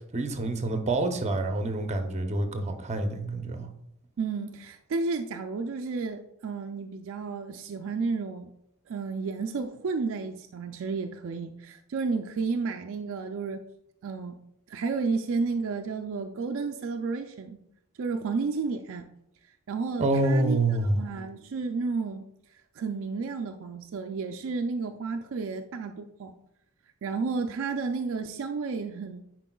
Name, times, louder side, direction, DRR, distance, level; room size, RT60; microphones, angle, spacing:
voice 1, 0.1-3.7 20.0-21.0, right 2 dB, 30° right, 6 dB, 0.7 m, -27 dB
voice 2, 4.2-8.5 8.9-13.6 14.0-14.4 14.7-17.6 18.0-19.1 19.7-20.6 20.9-22.3 22.8-26.3 27.0-29.2, right 4 dB, 65° right, 5 dB, 0.4 m, -32 dB
9.8 x 4.5 x 2.3 m, 0.82 s
head